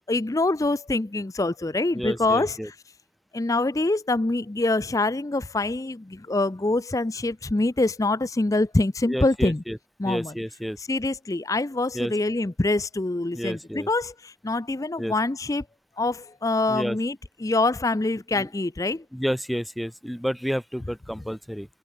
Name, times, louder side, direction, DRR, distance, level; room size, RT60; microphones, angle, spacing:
voice 1, 0.1-2.7 3.3-9.6 10.0-10.4 10.8-15.7 16.0-19.0, left 2 dB, 20° left, 0.4 m, -25 dB
voice 2, 1.9-2.7 9.1-9.8 10.0-10.8 11.9-12.1 13.3-13.9 15.0-15.1 16.7-17.0 18.4-18.5 19.1-21.7, equal, ahead, 1.1 m, -30 dB
head